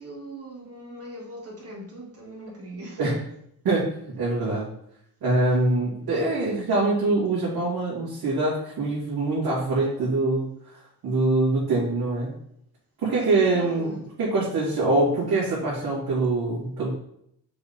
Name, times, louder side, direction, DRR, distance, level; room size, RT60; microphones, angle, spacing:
voice 1, 0.0-3.0 13.2-14.1, right 1 dB, 40° right, -2 dB, 2.4 m, -40 dB
voice 2, 4.2-4.6 5.2-10.5 11.0-12.3 13.0-16.9, right 2 dB, 75° right, -9 dB, 2.7 m, -24 dB
6.7 x 4.4 x 3.7 m, 0.72 s
cardioid pair, 105°, 38 cm